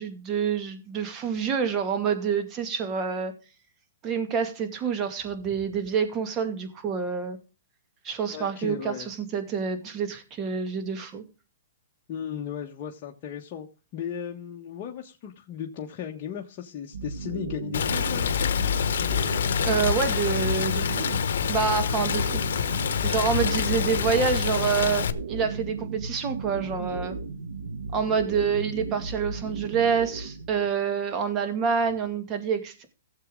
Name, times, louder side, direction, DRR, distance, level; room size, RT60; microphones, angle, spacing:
voice 1, 0.0-3.3 4.0-7.4 8.0-11.2 19.6-21.1 21.5-22.4 23.0-27.2 27.9-32.8, right 6 dB, 25° right, 2.3 m, -27 dB
voice 2, 8.3-9.1 12.1-13.7 13.9-18.5, left 9 dB, 40° left, 1.4 m, -36 dB
sound 1, 16.9-30.7, right 4 dB, 80° right, 1.7 m, -35 dB
Rain, 17.7-25.1, left 8 dB, 70° left, 1.0 m, -26 dB
16.0 x 7.4 x 3.9 m
hypercardioid pair, 140°, 0 cm